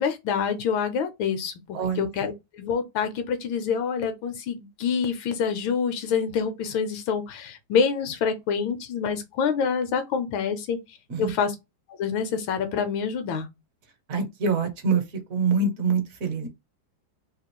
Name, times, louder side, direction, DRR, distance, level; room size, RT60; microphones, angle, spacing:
voice 1, 0.0-10.8 11.2-11.5 11.9-13.5, left 6 dB, 85° left, 1.5 m, -27 dB
voice 2, 1.7-2.1 11.1-11.3 14.1-15.0 15.3-16.5, right 4 dB, 60° right, 1.0 m, -25 dB
3.4 x 2.4 x 2.9 m
omnidirectional pair, 2.1 m